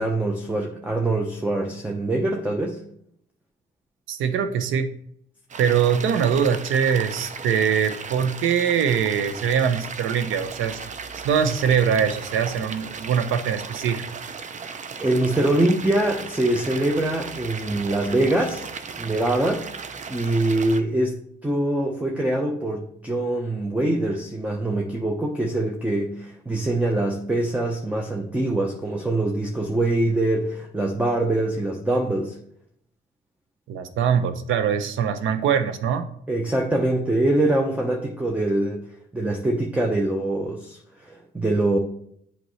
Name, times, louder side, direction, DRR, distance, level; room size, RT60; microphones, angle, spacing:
voice 1, 0.0-2.8 15.0-18.7 19.0-19.6 20.1-21.2 21.4-32.4 36.3-38.8 39.1-41.8, right 1 dB, 5° right, 1 dB, 0.8 m, -24 dB
voice 2, 4.1-4.9 5.6-10.8 11.2-14.1 33.7-36.1, right 7 dB, 85° right, 10 dB, 0.7 m, -22 dB
sound 1, 5.5-20.8, right 5 dB, 40° right, 0.6 m, -36 dB
8.0 x 4.4 x 3.2 m, 0.68 s
cardioid pair, 90°, 20 cm